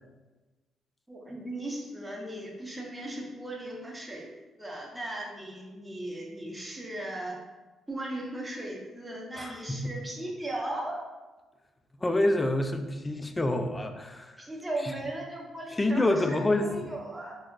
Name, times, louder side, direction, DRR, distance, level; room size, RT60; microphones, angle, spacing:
voice 1, 1.1-4.3 4.6-7.4 7.9-11.0 14.4-17.4, right 1 dB, 15° right, -2 dB, 0.7 m, -37 dB
voice 2, 9.4-9.8 12.0-14.5 15.8-16.7, left 2 dB, 20° left, 6 dB, 0.3 m, -27 dB
2.7 x 2.4 x 3.5 m, 1.2 s
cardioid pair, 90°, 0 cm